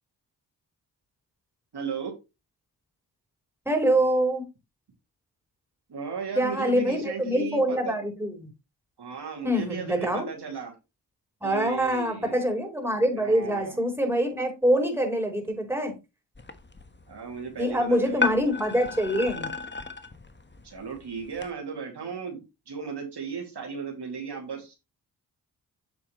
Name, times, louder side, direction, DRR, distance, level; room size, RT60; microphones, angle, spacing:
voice 1, 1.7-2.1 5.9-8.0 9.0-10.8 11.4-12.4 13.1-13.8 17.1-18.3 20.6-24.8, right 6 dB, 70° right, 1 dB, 2.7 m, -36 dB
voice 2, 3.7-4.4 6.3-8.5 9.4-10.2 11.4-15.9 17.6-19.5, equal, 5° right, 3 dB, 4.4 m, -25 dB
Dragging baseball bat, 16.4-21.5, left 4 dB, 25° left, 1.5 m, -35 dB
8.8 x 7.1 x 3.2 m, 0.25 s
cardioid pair, 45°, 42 cm